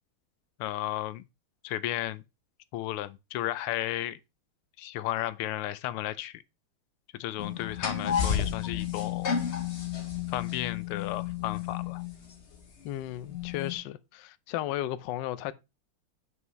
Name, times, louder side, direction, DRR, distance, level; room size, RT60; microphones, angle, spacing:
voice 1, 0.6-1.2 1.6-2.2 2.7-4.2 4.8-6.4 7.1-9.4 10.3-12.0, left 14 dB, 90° left, 1.5 m, -34 dB
sound 1, 7.4-12.6 13.3-13.7, left 8 dB, 40° left, 1.1 m, -32 dB
voice 2, 12.8-15.5, left 13 dB, 75° left, 1.1 m, -34 dB
7.9 x 5.5 x 3.1 m
omnidirectional pair, 2.4 m